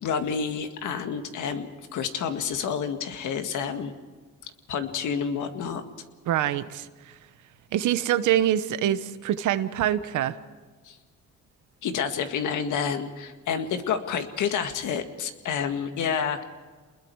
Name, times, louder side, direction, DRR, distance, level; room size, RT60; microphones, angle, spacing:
voice 1, 0.0-3.9 4.4-5.8 10.8-11.0 11.8-16.4, left 7 dB, 80° left, 7 dB, 2.0 m, -29 dB
voice 2, 6.3-7.2 7.7-10.4, right 11 dB, 80° right, 13 dB, 1.1 m, -25 dB
28.5 x 21.0 x 4.8 m, 1.4 s
cardioid pair, 90°, 30 cm